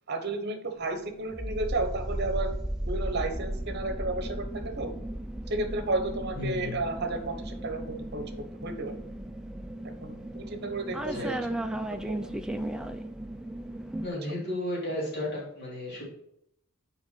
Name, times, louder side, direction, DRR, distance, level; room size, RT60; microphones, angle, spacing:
voice 1, 0.1-2.5 2.9-4.9 5.5-8.9 10.0-11.4 11.8-12.3, right 2 dB, 50° right, 7 dB, 1.0 m, -33 dB
sound 1, 1.3-14.1, right 1 dB, 5° right, 0.4 m, -35 dB
voice 2, 6.4-6.8 11.1-11.3 14.0-16.0, left 1 dB, 50° left, -5 dB, 2.9 m, -33 dB
6.2 x 5.0 x 5.7 m, 0.77 s
head